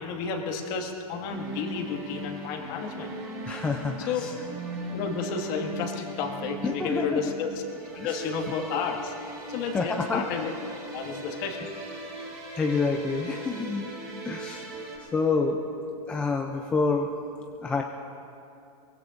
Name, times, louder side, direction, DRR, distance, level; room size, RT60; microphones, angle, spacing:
voice 1, 0.0-3.1 4.1-4.3 4.9-7.6 7.9-9.1 9.5-10.5 10.9-11.7, left 5 dB, 35° left, 2 dB, 1.8 m, -32 dB
sound 1, 1.3-15.0, right 1 dB, 15° right, 3.6 m, -39 dB
voice 2, 3.4-4.3 6.6-7.2 8.0-8.2 9.7-10.2 12.1-13.9 14.2-14.7 15.0-15.6 16.1-17.1 17.6-17.8, left 4 dB, 5° left, 2 dB, 0.3 m, -28 dB
23.5 x 22.0 x 2.5 m, 2.6 s
supercardioid pair, 160°, 20 cm